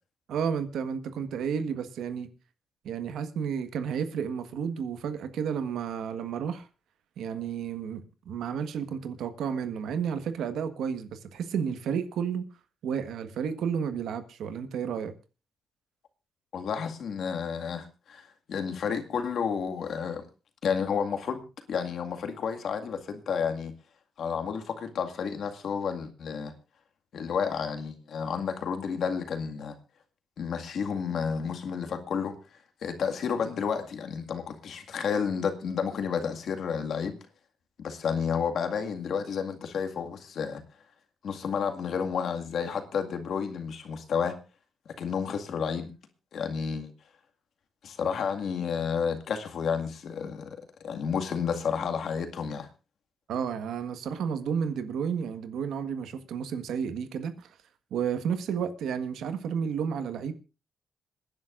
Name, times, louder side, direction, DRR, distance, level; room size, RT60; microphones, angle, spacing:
voice 1, 0.3-2.3 2.8-6.7 7.2-12.5 12.8-15.1 53.3-57.5 57.9-60.3, right 7 dB, 85° right, 1.5 m, -32 dB
voice 2, 16.5-20.3 20.6-21.4 21.7-23.7 24.2-26.5 27.1-29.8 30.4-32.4 32.8-37.2 37.8-40.6 41.2-44.4 45.0-45.9 46.3-46.9 47.8-50.6 50.8-52.7, left 6 dB, 65° left, 2.0 m, -31 dB
27.0 x 10.5 x 2.6 m
cardioid pair, 110°, 0 cm